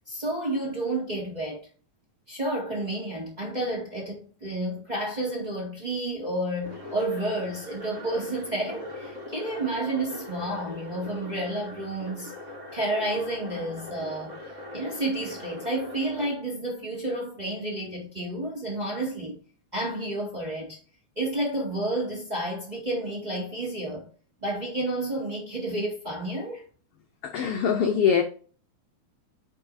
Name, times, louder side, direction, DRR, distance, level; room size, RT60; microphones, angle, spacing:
voice 1, 0.1-1.7 2.3-12.3 12.7-14.4 14.7-19.4 19.7-20.8 21.1-24.1 24.4-26.6, right 1 dB, 20° right, 1.4 m, -30 dB
sound 1, 6.6-16.3, left 2 dB, 35° right, 4.0 m, -41 dB
voice 2, 27.3-28.2, left 7 dB, 75° left, 1.3 m, -22 dB
8.4 x 4.8 x 2.6 m
omnidirectional pair, 3.5 m